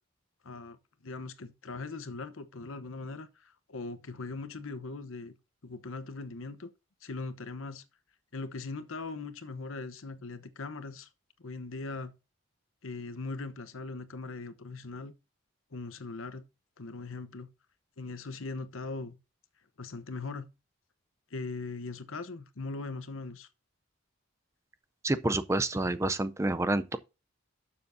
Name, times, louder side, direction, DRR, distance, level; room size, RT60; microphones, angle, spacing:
voice 1, 0.4-0.8 1.0-5.3 5.6-6.7 7.0-7.8 8.3-11.1 11.4-12.1 12.8-15.1 15.7-16.4 16.8-17.5 18.0-19.2 19.8-20.5 21.3-23.5, left 3 dB, 75° left, 0.9 m, -40 dB
voice 2, 25.0-27.0, right 2 dB, 15° right, 0.4 m, -28 dB
12.0 x 7.0 x 2.6 m
head